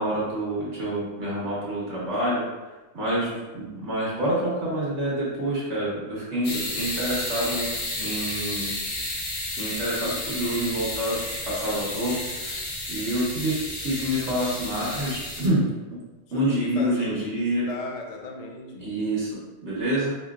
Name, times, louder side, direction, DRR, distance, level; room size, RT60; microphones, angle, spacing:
voice 1, 0.0-2.4 2.9-7.7 8.0-8.7 9.6-15.6 16.3-17.6 18.8-20.1, right 1 dB, 80° right, -7 dB, 1.5 m, -27 dB
sound 1, 6.4-15.5, left 1 dB, 65° left, 1.1 m, -32 dB
voice 2, 16.3-19.0, left 3 dB, 50° left, 1 dB, 0.5 m, -36 dB
4.9 x 2.8 x 2.4 m, 1.2 s
omnidirectional pair, 1.1 m